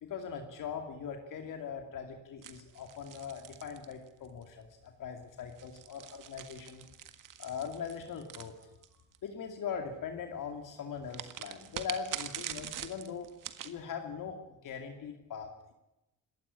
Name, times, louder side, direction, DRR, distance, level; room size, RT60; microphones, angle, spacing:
voice 1, 0.0-6.9 7.4-8.6 9.2-13.4 13.6-15.7, left 6 dB, 80° left, 5 dB, 2.6 m, -41 dB
sound 1, 2.4-4.4 5.4-9.2 11.1-13.8, right 10 dB, 80° right, 1.7 m, -43 dB
27.0 x 12.5 x 9.9 m, 0.94 s
cardioid pair, 85°, 31 cm